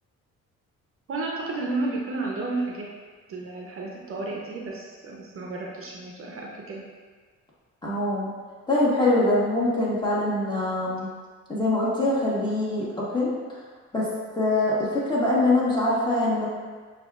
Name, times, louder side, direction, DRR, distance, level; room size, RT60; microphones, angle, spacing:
voice 1, 1.1-2.9 3.3-6.8, right 3 dB, 45° right, -2 dB, 0.6 m, -32 dB
voice 2, 7.8-8.3 8.7-11.1 11.5-12.8 13.1-13.3 13.9-14.1 14.4-16.5, left 2 dB, 15° left, -7 dB, 1.2 m, -23 dB
6.2 x 2.4 x 2.3 m, 1.5 s
cardioid pair, 90°, 30 cm